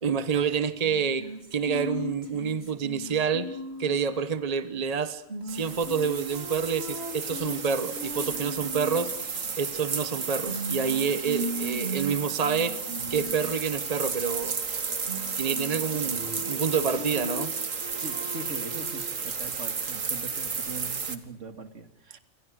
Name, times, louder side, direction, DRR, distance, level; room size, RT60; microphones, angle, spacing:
voice 1, 0.0-9.1 9.6-12.8 13.1-14.6 15.4-17.5, right 6 dB, 30° right, 12 dB, 1.2 m, -28 dB
sound 1, 0.8-4.1 5.3-9.1 10.5-13.6 14.8-15.9 16.2-19.1, right 1 dB, 55° right, 3.3 m, -37 dB
sound 2, 5.5-21.2, right 5 dB, 90° right, 2.2 m, -33 dB
voice 2, 18.0-22.2, right 3 dB, 70° right, 8 dB, 2.5 m, -41 dB
28.5 x 23.5 x 6.4 m, 0.78 s
omnidirectional pair, 1.3 m